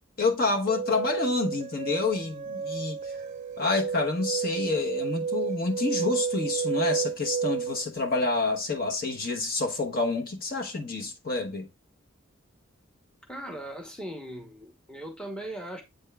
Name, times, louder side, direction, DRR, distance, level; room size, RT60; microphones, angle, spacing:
voice 1, 0.2-3.0 3.6-11.7, left 3 dB, 45° left, 1.1 m, -28 dB
sound 1, 0.7-7.8, right 6 dB, 35° right, 0.5 m, -31 dB
voice 2, 13.3-15.8, right 1 dB, 5° left, 1.0 m, -39 dB
8.0 x 3.5 x 3.3 m
head